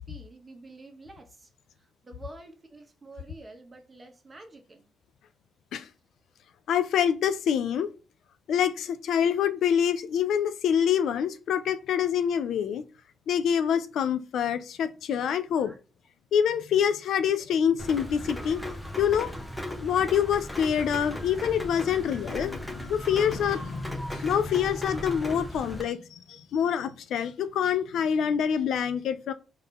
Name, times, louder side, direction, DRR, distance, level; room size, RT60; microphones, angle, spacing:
voice 1, 0.0-1.5 1.8-4.9 14.8-14.9 15.6-15.8 21.3-21.4, right 2 dB, 25° right, 1.1 m, -49 dB
voice 2, 6.7-7.9 8.5-12.8 13.3-15.7 16.3-18.6 19.0-19.3 19.8-29.3, left 8 dB, 75° left, 0.4 m, -26 dB
Rain, 17.8-25.8, left 1 dB, 10° left, 0.8 m, -36 dB
4.0 x 2.6 x 3.4 m
cardioid pair, 90°, 0 cm